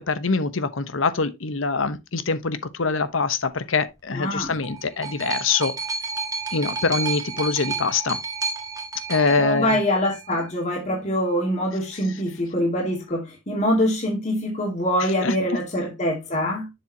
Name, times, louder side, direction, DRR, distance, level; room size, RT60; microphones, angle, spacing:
voice 1, 0.1-5.7 6.5-8.2 9.1-9.8 15.2-15.3, left 4 dB, 80° left, 1.0 m, -24 dB
voice 2, 4.1-4.5 9.4-16.7, equal, 35° left, 2.6 m, -24 dB
sound 1, 4.4-10.4 11.3-11.4, right 4 dB, 20° right, 1.5 m, -31 dB
7.3 x 7.1 x 2.8 m
head